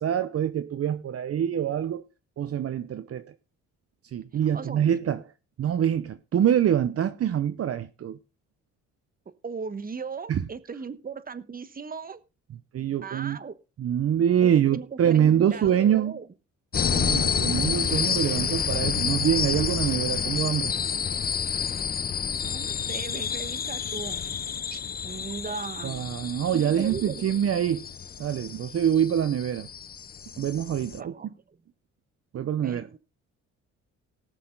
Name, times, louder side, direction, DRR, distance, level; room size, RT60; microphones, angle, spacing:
voice 1, 0.0-2.0 2.4-3.3 4.1-5.2 5.6-8.2 10.3-10.4 12.7-13.4 13.8-16.1 16.9-20.7 25.8-27.9 28.2-29.7 30.4-31.1 32.3-32.9, right 9 dB, 50° right, 0.8 m, -25 dB
voice 2, 9.4-12.2 13.0-13.6 14.4-16.3 22.0-24.2 24.7-26.1 26.5-27.3 31.0-31.6 32.6-33.0, right 5 dB, 30° right, 1.2 m, -38 dB
sound 1, 16.7-31.0, left 7 dB, 30° left, 0.5 m, -29 dB
18.5 x 6.6 x 3.8 m
cardioid pair, 90°, 30 cm